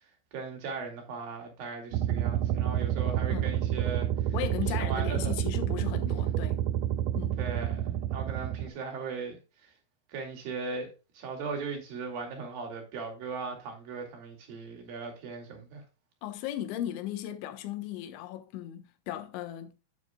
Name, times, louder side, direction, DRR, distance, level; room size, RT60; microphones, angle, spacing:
voice 1, 0.3-4.3 4.6-5.3 7.4-9.7 10.1-15.8, right 4 dB, 55° right, 3.7 m, -38 dB
sound 1, 1.9-8.7, right 11 dB, 85° right, 2.5 m, -29 dB
voice 2, 4.3-6.6 7.1-7.4 16.2-19.7, left 12 dB, 75° left, 3.3 m, -36 dB
9.6 x 9.2 x 2.3 m
omnidirectional pair, 5.7 m